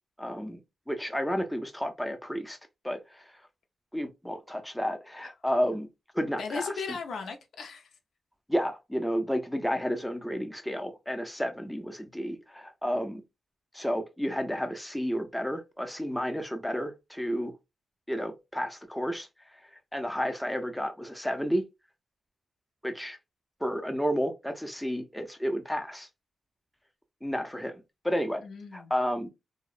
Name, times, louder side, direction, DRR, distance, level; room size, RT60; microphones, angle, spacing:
voice 1, 0.2-0.6 0.9-2.6 2.8-3.3 3.9-5.9 6.1-6.7 8.5-13.2 13.7-17.5 18.1-19.3 19.9-21.6 22.8-23.2 23.6-26.1 27.2-28.4 28.7-29.3, equal, 5° left, 0.4 m, -31 dB
voice 2, 6.4-7.9 28.4-28.9, left 4 dB, 85° left, 0.5 m, -36 dB
2.7 x 2.0 x 2.3 m
wide cardioid pair, 115°, 0 cm